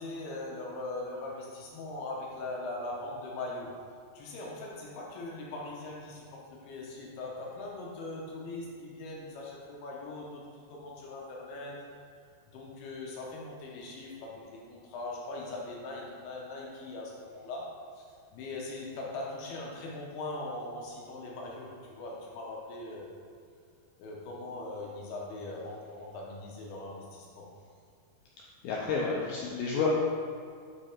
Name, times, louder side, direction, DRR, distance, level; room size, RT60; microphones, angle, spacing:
voice 1, 0.0-3.8 4.1-11.9 12.5-18.0 18.3-23.2 24.0-27.5, left 2 dB, 75° left, -3 dB, 2.5 m, -40 dB
voice 2, 28.6-29.9, left 5 dB, 90° left, -4 dB, 2.1 m, -30 dB
8.5 x 5.2 x 4.4 m, 2.2 s
omnidirectional pair, 5.1 m